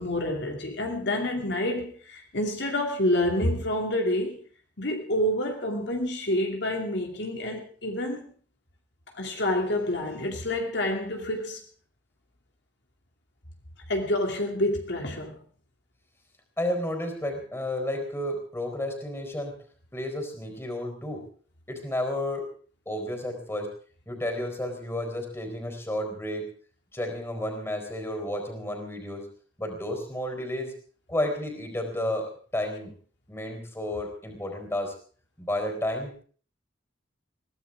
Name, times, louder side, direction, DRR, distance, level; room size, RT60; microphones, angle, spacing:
voice 1, 0.0-4.4 4.8-8.2 9.1-11.6 13.9-15.4, left 1 dB, 65° left, 2 dB, 2.7 m, -28 dB
voice 2, 16.6-19.6 19.9-21.2 21.7-22.5 22.9-23.7 24.1-26.5 26.9-29.3 29.6-30.7 31.1-32.9 33.3-34.9 35.4-36.2, left 1 dB, 15° left, 4 dB, 4.2 m, -31 dB
22.5 x 16.5 x 3.6 m, 0.43 s
head